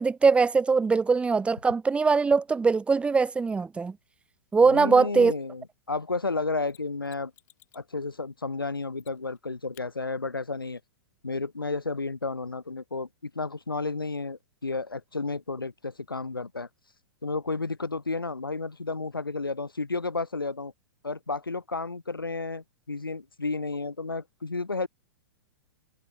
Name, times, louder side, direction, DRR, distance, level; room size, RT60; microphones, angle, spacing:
voice 1, 0.0-3.9 4.5-5.3, right 4 dB, 10° right, 1.1 m, -22 dB
voice 2, 4.6-7.3 7.7-10.8 11.2-16.7 17.2-20.7 21.0-24.9, left 3 dB, 85° left, 1.4 m, -32 dB
Mechanisms, 6.7-7.9 9.0-9.4 9.7-9.9 12.6-12.7, left 16 dB, 50° left, 8.0 m, -57 dB
figure-of-eight pair, 105°, 12 cm